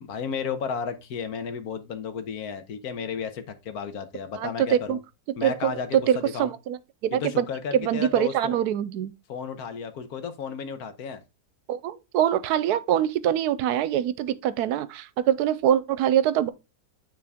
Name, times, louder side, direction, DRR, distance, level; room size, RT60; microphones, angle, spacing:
voice 1, 0.0-5.0 5.4-6.5 7.1-8.6 9.3-11.2, left 6 dB, 75° left, 1.4 m, -33 dB
voice 2, 4.4-5.0 5.4-6.8 7.0-7.5 7.7-9.1 11.7-16.5, right 10 dB, 80° right, 1.1 m, -24 dB
9.7 x 3.9 x 3.5 m
omnidirectional pair, 1.7 m